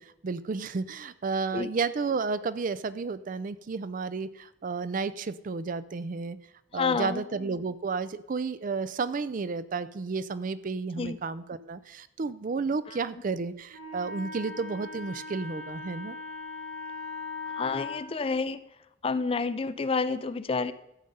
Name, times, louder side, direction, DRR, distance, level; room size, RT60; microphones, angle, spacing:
voice 1, 0.0-6.4 6.7-16.2, right 4 dB, 45° right, 14 dB, 0.4 m, -32 dB
voice 2, 6.7-7.3 11.0-11.2 17.6-18.6 19.0-20.7, left 4 dB, 30° left, 13 dB, 0.4 m, -29 dB
Wind instrument woodwind instrument, 13.7-18.1, left 4 dB, 75° right, 3.8 m, -39 dB
13.5 x 7.8 x 5.5 m, 0.85 s
head